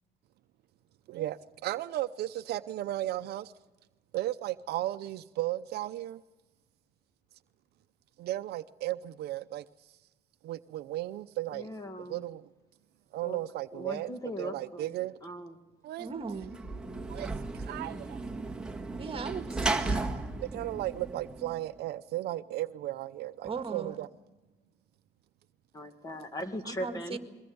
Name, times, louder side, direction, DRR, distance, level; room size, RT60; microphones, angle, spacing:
voice 1, 1.1-3.5 4.1-6.2 8.2-9.7 10.4-11.7 12.0-12.5 13.1-14.1 14.4-15.2 15.8-16.1 17.1-18.2 20.4-24.1, right 15 dB, 70° right, 0.7 m, -35 dB
voice 2, 11.5-12.3 13.2-13.4 13.7-15.0 15.2-15.6 25.7-27.2, equal, 20° left, 2.1 m, -39 dB
voice 3, 16.0-16.5 19.0-20.1 23.4-24.0 26.7-27.2, right 5 dB, 35° right, 1.9 m, -38 dB
Sliding door / Slam, 16.3-21.7, right 2 dB, 5° right, 1.7 m, -35 dB
23.0 x 18.5 x 7.9 m
cardioid pair, 110°, 17 cm